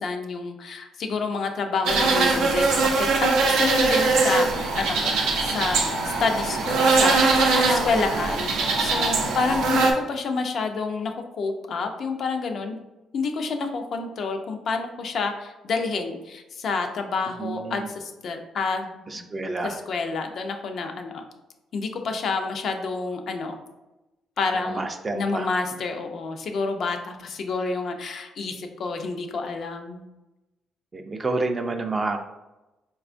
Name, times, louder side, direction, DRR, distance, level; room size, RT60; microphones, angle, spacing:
voice 1, 0.0-12.8 13.1-19.3 19.6-21.2 21.7-23.6 24.4-24.8 25.1-30.0, left 4 dB, 60° left, 5 dB, 0.4 m, -29 dB
sound 1, 1.8-9.9, right 3 dB, 85° right, 0.5 m, -21 dB
voice 2, 7.9-8.3 17.4-17.9 19.1-19.8 24.5-25.5 30.9-32.2, right 3 dB, 30° right, 5 dB, 0.4 m, -29 dB
4.1 x 2.2 x 2.5 m, 1.0 s
cardioid pair, 90°, 0 cm